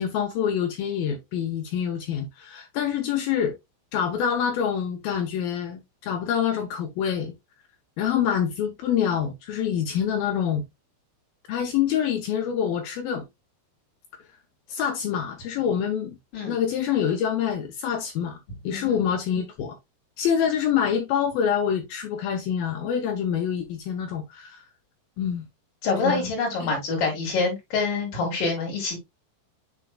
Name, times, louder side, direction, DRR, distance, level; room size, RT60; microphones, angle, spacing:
voice 1, 0.0-3.6 3.9-7.3 8.0-10.6 11.5-13.3 14.7-16.2 16.5-18.4 18.6-19.8 20.2-24.6 25.2-25.4 26.0-26.3 26.6-26.8, left 8 dB, 80° left, 2.1 m, -26 dB
voice 2, 18.7-19.0 25.8-29.0, left 4 dB, 50° left, 5.5 m, -26 dB
9.8 x 4.5 x 2.3 m
omnidirectional pair, 5.3 m